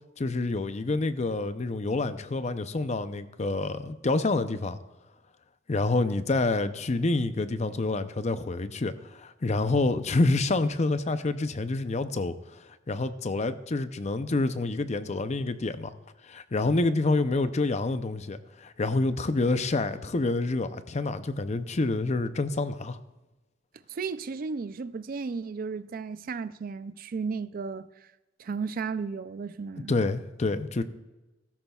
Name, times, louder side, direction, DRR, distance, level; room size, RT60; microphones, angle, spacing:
voice 1, 0.2-4.8 5.7-12.6 12.9-15.9 16.2-23.0 29.9-30.8, left 2 dB, 35° left, 0.6 m, -27 dB
voice 2, 23.9-27.9 28.4-30.0, right 5 dB, 45° right, 0.4 m, -34 dB
15.5 x 13.5 x 2.3 m
head